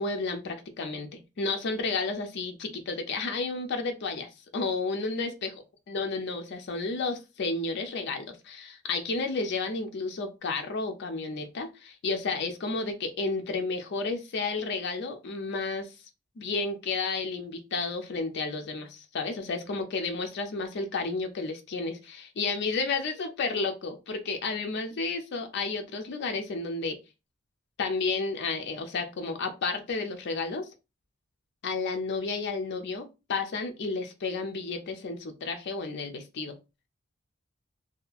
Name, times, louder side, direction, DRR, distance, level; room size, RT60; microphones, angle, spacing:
voice 1, 0.0-5.5 5.9-15.9 16.4-27.0 27.8-30.7 31.6-36.5, left 3 dB, 55° left, 0.4 m, -32 dB
2.7 x 2.3 x 2.4 m
head